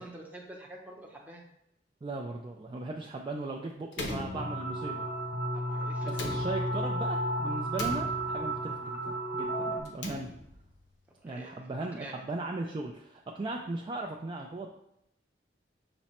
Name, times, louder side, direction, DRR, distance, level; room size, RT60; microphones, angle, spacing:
voice 1, 0.0-1.5 5.5-6.6 11.2-11.5 12.0-12.2, right 1 dB, 10° right, -2 dB, 0.7 m, -47 dB
voice 2, 2.0-5.1 6.0-10.3 11.2-14.7, right 2 dB, 30° right, 0 dB, 0.3 m, -38 dB
Slam, 3.9-5.1 6.1-7.0 7.7-8.6 9.8-10.7, left 2 dB, 75° left, 0.7 m, -40 dB
sound 1, 4.3-9.8, right 1 dB, 35° left, 0.5 m, -32 dB
5.9 x 2.1 x 4.1 m, 0.80 s
head